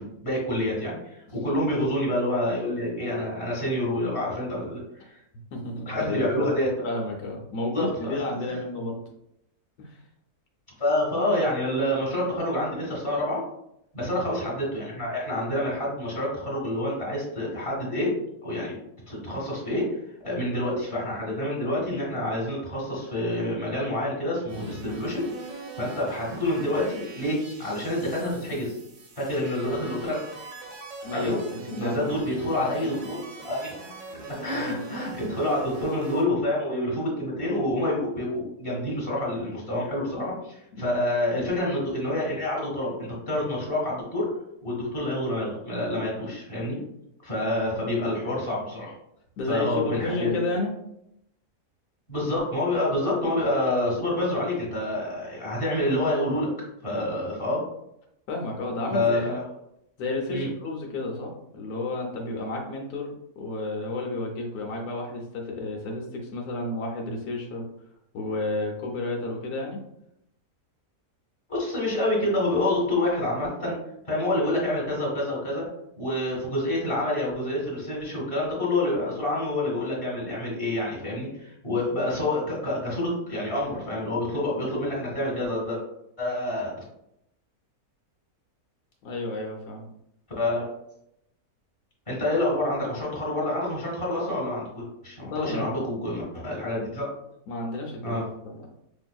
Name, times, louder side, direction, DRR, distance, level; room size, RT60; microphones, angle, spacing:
voice 1, 0.0-5.1 5.9-6.7 7.7-8.1 10.8-13.4 13.9-18.1 18.4-18.7 19.1-20.0 20.2-28.8 29.2-30.2 31.1-33.7 34.3-44.3 44.6-46.8 47.2-48.9 49.5-50.3 52.1-56.5 56.8-57.6 58.9-59.5 60.3-60.5 71.5-73.8 74.1-75.7 76.0-85.8 86.2-86.7 90.4-90.6 92.1-97.1 98.0-98.2, left 1 dB, 20° left, -4 dB, 1.3 m, -27 dB
voice 2, 5.5-6.5 6.8-9.0 9.8-10.0 14.0-14.2 31.0-32.1 34.5-34.7 40.8-41.0 47.6-48.1 49.4-50.7 58.3-59.3 60.0-67.7 68.1-69.8 89.0-89.9 95.2-95.7 97.5-98.6, left 2 dB, 80° left, 0 dB, 1.2 m, -31 dB
sound 1, 24.5-36.2, right 3 dB, 70° right, 1.1 m, -42 dB
5.2 x 2.6 x 2.2 m, 0.78 s
omnidirectional pair, 1.6 m